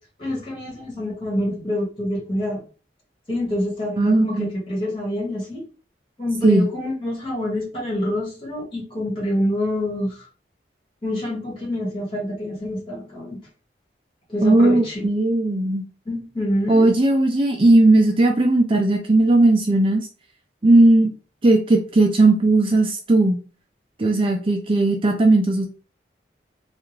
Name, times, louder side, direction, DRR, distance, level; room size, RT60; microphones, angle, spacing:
voice 1, 0.2-2.6 3.3-5.6 6.2-10.3 11.0-13.4 14.3-15.1 16.1-16.9, left 1 dB, 30° left, -4 dB, 1.8 m, -26 dB
voice 2, 4.0-4.5 6.4-6.7 14.4-15.8 16.7-20.1 20.6-21.1 21.4-23.4 24.0-25.7, right 2 dB, 30° right, 2 dB, 0.4 m, -17 dB
3.4 x 2.4 x 3.1 m, 0.36 s
head